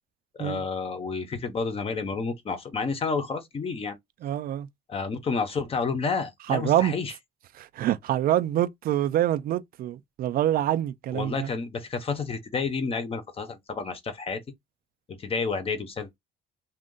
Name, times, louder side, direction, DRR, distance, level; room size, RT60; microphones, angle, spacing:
voice 1, 0.3-4.0 4.9-7.1 11.1-14.4 15.1-16.1, left 4 dB, 35° left, 0.8 m, -30 dB
voice 2, 4.2-4.7 6.5-6.9 7.6-11.5, right 12 dB, 60° right, 0.4 m, -26 dB
2.6 x 2.4 x 3.7 m
cardioid pair, 110°, 17 cm